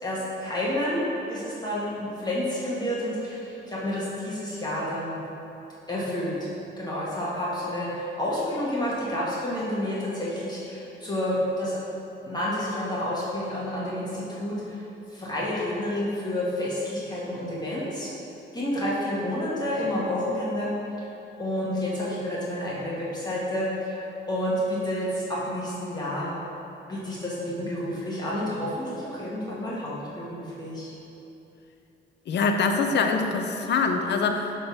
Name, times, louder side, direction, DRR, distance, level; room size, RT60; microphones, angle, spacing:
voice 1, 0.0-5.2 5.9-6.4 6.8-11.8 12.2-14.8 15.1-18.1 18.5-21.1 21.4-26.3 26.9-30.9, left 1 dB, 20° left, -7 dB, 1.6 m, -29 dB
voice 2, 32.3-34.7, left 4 dB, 60° left, 5 dB, 0.7 m, -24 dB
7.7 x 3.8 x 5.9 m, 3.0 s
cardioid pair, 90°, 20 cm